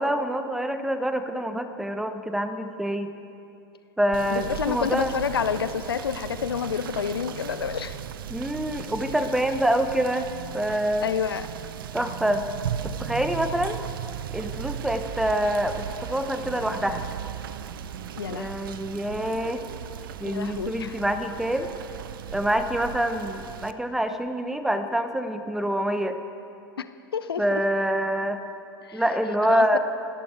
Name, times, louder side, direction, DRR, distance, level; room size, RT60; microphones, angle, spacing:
voice 1, 0.0-3.1 4.0-5.1 8.3-10.3 10.5-11.1 11.9-12.4 12.8-13.8 14.3-17.0 18.3-19.6 20.2-21.7 22.3-26.2 27.4-28.4 28.9-29.8, right 1 dB, 5° right, 9 dB, 1.0 m, -26 dB
Rain / Motor vehicle (road), 4.1-23.7, right 9 dB, 65° right, 0.7 m, -37 dB
voice 2, 4.3-8.0 11.0-11.5 18.2-18.5 20.2-21.0 26.8-26.9 27.1-27.6 28.9-29.0 29.5-29.8, left 7 dB, 75° left, 12 dB, 0.6 m, -29 dB
29.0 x 10.5 x 4.6 m, 2.7 s
figure-of-eight pair, 90°, 13 cm